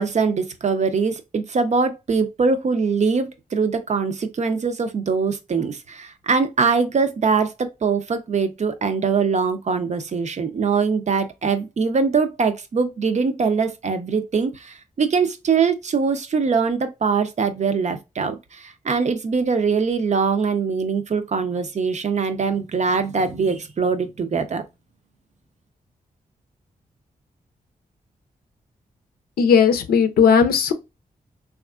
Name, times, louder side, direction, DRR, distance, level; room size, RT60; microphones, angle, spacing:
voice 1, 0.0-24.6, right 5 dB, 50° right, 0.5 m, -22 dB
voice 2, 29.4-30.7, left 6 dB, 90° left, 0.5 m, -16 dB
3.4 x 2.4 x 2.3 m
cardioid pair, 55°, 15 cm